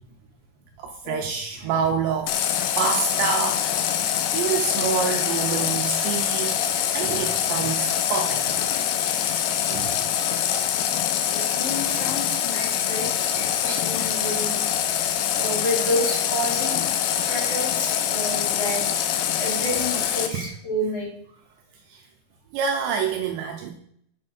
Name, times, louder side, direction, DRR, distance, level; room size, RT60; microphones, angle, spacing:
voice 1, 0.8-3.8 4.3-6.6 6.9-8.7 9.7-10.0 20.3-20.4 21.9-22.0 22.5-23.7, right 6 dB, 90° right, 3 dB, 2.5 m, -27 dB
Water tap faucet, 2.3-20.3, left 10 dB, 80° left, 2.6 m, -24 dB
voice 2, 11.3-13.1 13.4-14.6 15.2-16.8 17.2-18.9 19.4-21.1, equal, 35° left, -7 dB, 3.9 m, -29 dB
7.5 x 6.6 x 4.1 m, 0.66 s
omnidirectional pair, 5.8 m